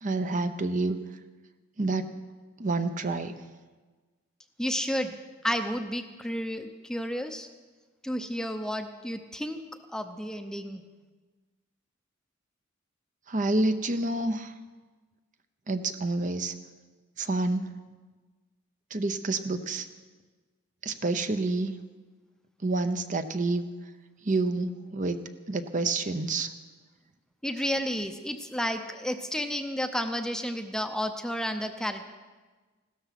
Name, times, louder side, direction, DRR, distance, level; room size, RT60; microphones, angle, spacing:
voice 1, 0.0-1.0 1.8-2.0 2.6-3.3 13.3-14.5 15.7-16.5 17.2-17.7 18.9-19.9 20.8-21.7 22.6-23.6 24.2-25.2 25.5-26.5, right 2 dB, 40° right, 9 dB, 0.8 m, -28 dB
voice 2, 4.6-5.1 5.4-7.5 8.0-9.6 9.9-10.8 27.4-32.0, equal, 5° left, 7 dB, 0.7 m, -31 dB
16.5 x 13.0 x 5.9 m, 1.3 s
head